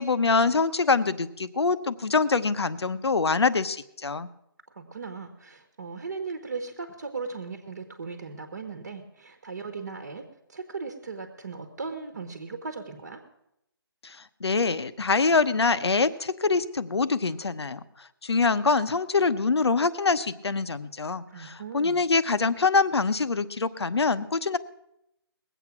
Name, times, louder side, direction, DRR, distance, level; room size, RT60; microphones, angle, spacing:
voice 1, 0.0-4.3 14.0-24.6, left 4 dB, 85° left, 13 dB, 0.9 m, -25 dB
voice 2, 4.7-13.2 21.3-22.0, right 4 dB, 40° right, 7 dB, 1.2 m, -37 dB
20.0 x 8.1 x 6.0 m, 0.80 s
hypercardioid pair, 175°, 13 cm